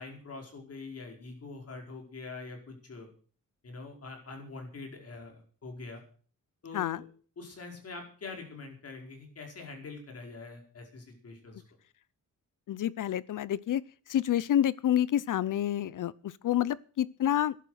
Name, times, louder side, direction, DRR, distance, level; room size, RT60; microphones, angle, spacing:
voice 1, 0.0-3.1 3.6-6.0 6.6-7.0 7.4-11.6, left 3 dB, 45° left, 2 dB, 4.8 m, -44 dB
voice 2, 12.7-13.8 14.1-17.6, left 11 dB, 65° left, 21 dB, 0.6 m, -28 dB
13.5 x 11.0 x 6.4 m, 0.43 s
wide cardioid pair, 145°, 34 cm